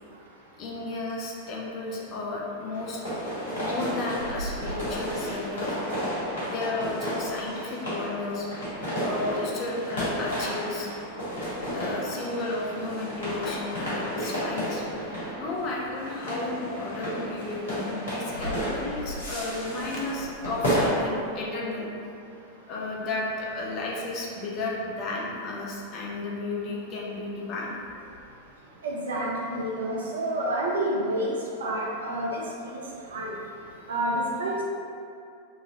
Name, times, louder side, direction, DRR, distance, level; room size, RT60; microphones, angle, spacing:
voice 1, 0.6-3.0 3.6-5.8 6.4-8.6 9.0-10.9 11.7-15.0 15.4-21.9 22.7-27.8, left 2 dB, 35° left, -3 dB, 0.5 m, -33 dB
sound 1, 2.7-20.9, equal, 65° left, 1.2 m, -32 dB
voice 2, 28.8-31.3 31.6-32.8 33.1-33.3 33.9-34.6, right 1 dB, 65° right, -3 dB, 0.5 m, -29 dB
2.9 x 2.6 x 2.5 m, 2.5 s
figure-of-eight pair, 90°, 0 cm